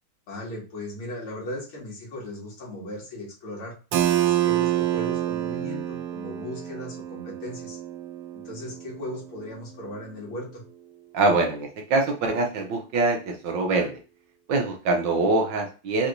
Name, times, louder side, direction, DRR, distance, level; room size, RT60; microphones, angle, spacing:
voice 1, 0.3-3.7 4.2-7.8 8.3-10.6, left 1 dB, 75° left, -4 dB, 2.9 m, -37 dB
Keyboard (musical), 3.9-9.5, right 13 dB, 85° right, 1.6 m, -27 dB
voice 2, 11.1-14.0 14.5-16.1, right 3 dB, 65° right, 3 dB, 1.4 m, -24 dB
5.8 x 3.2 x 2.6 m, 0.34 s
omnidirectional pair, 2.3 m